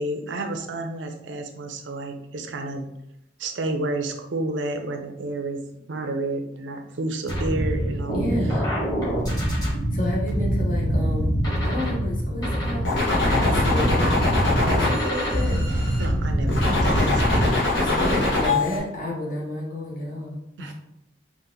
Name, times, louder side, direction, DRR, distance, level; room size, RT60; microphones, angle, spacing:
voice 1, 0.0-2.9 3.4-5.6 5.9-8.6 16.0-17.5 20.6-20.7, right 2 dB, 90° right, 5 dB, 0.6 m, -30 dB
sound 1, 7.3-17.4, equal, 20° left, 1.4 m, -24 dB
voice 2, 8.1-8.7 9.9-14.1 14.7-15.6 17.7-20.7, left 1 dB, 45° left, -3 dB, 1.1 m, -31 dB
sound 2, 12.8-16.1 16.5-18.8, left 2 dB, 70° left, 1.2 m, -23 dB
4.0 x 2.5 x 3.8 m, 0.81 s
head